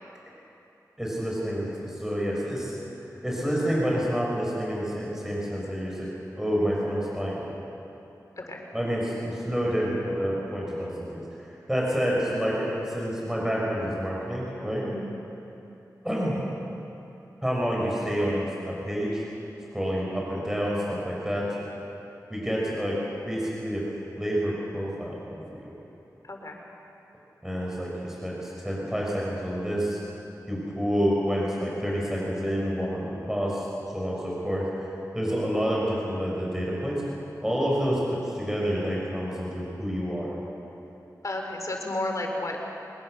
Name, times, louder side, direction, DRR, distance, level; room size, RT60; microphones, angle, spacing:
voice 1, 1.0-2.8 3.2-6.1 6.3-7.5 8.7-14.9 16.0-16.4 17.4-19.2 19.7-21.4 22.3-23.0 23.2-23.8 24.2-25.7 27.4-30.0 30.5-33.6 33.9-37.0 37.4-40.3, equal, 5° right, -4 dB, 6.5 m, -28 dB
voice 2, 26.2-26.6 41.2-42.6, left 1 dB, 55° left, 2 dB, 4.1 m, -32 dB
24.0 x 20.5 x 6.9 m, 3.0 s
wide cardioid pair, 55°, 7 cm